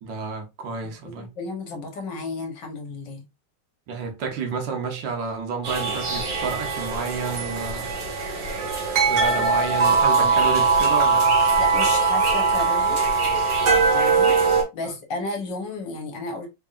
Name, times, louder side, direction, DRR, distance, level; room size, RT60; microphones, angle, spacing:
voice 1, 0.0-1.3 3.9-7.9 9.1-11.3 14.8-14.9, right 5 dB, 75° right, 1.6 m, -30 dB
voice 2, 0.8-3.2 8.9-9.4 9.9-10.0 10.2-10.3 11.6-13.0 13.9-16.5, left 3 dB, 75° left, 1.8 m, -33 dB
sound 1, 5.6-14.6, right 4 dB, 55° right, 1.7 m, -21 dB
4.0 x 3.6 x 2.5 m
omnidirectional pair, 2.0 m